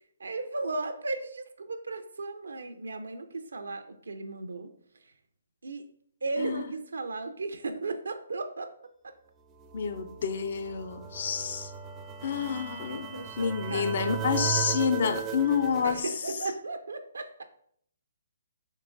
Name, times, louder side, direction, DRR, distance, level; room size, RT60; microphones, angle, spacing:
voice 1, 0.2-4.7 5.6-5.8 6.2-8.7 9.0-9.1 12.9-14.0 15.8-17.4, right 3 dB, 80° right, 0.4 m, -35 dB
sound 1, 9.5-16.0, right 10 dB, 20° right, 0.4 m, -37 dB
voice 2, 9.7-11.7 12.2-16.1, left 6 dB, 55° left, 0.4 m, -29 dB
3.7 x 3.0 x 3.7 m
hypercardioid pair, 140°, 0 cm